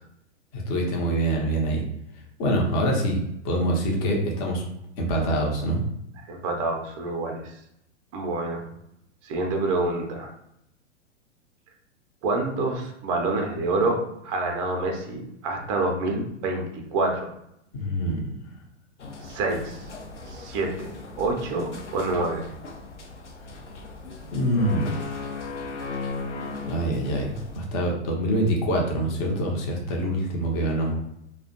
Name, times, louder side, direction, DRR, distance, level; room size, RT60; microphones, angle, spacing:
voice 1, 0.5-1.8 2.4-4.6 5.0-5.8 17.7-18.2 24.3-25.1 26.3-30.9, right 1 dB, 35° left, 0 dB, 0.6 m, -25 dB
voice 2, 6.3-7.4 8.1-8.6 9.2-10.3 12.2-17.3 19.2-19.9 20.3-20.9 21.2-22.5, right 2 dB, 30° right, 2 dB, 0.4 m, -27 dB
sound 1, 19.0-27.6, left 3 dB, 80° left, 0.5 m, -37 dB
2.4 x 2.1 x 2.5 m, 0.79 s
figure-of-eight pair, 105°, 35 cm